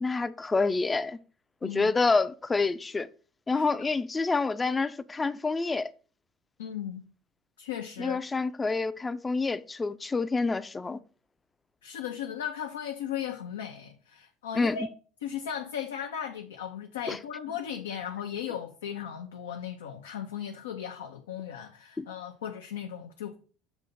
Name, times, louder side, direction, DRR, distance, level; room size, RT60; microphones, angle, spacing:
voice 1, 0.0-1.2 1.6-3.1 3.5-5.9 8.0-11.0 14.6-14.8 17.1-17.2 22.0-22.1, left 3 dB, 20° left, 0.5 m, -27 dB
voice 2, 6.6-7.1 7.6-8.2 11.8-14.9 15.2-23.4, left 9 dB, 80° left, 0.6 m, -36 dB
7.1 x 2.7 x 5.2 m
hypercardioid pair, 70°, 0 cm